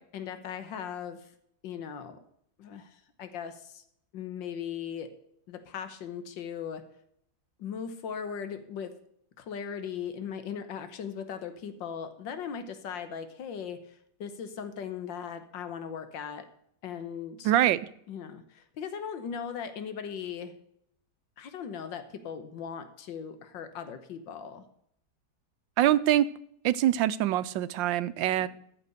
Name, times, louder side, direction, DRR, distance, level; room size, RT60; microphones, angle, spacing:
voice 1, 0.1-1.3 1.6-2.2 2.6-3.8 4.1-5.1 5.5-6.8 7.6-8.9 9.4-16.5 16.8-17.5 18.1-20.5 21.4-24.7 28.4-28.5, left 7 dB, 90° left, 1.8 m, -38 dB
voice 2, 17.4-17.8 25.8-26.3 26.6-28.5, right 12 dB, 90° right, 1.4 m, -24 dB
13.5 x 6.0 x 6.5 m
omnidirectional pair, 2.0 m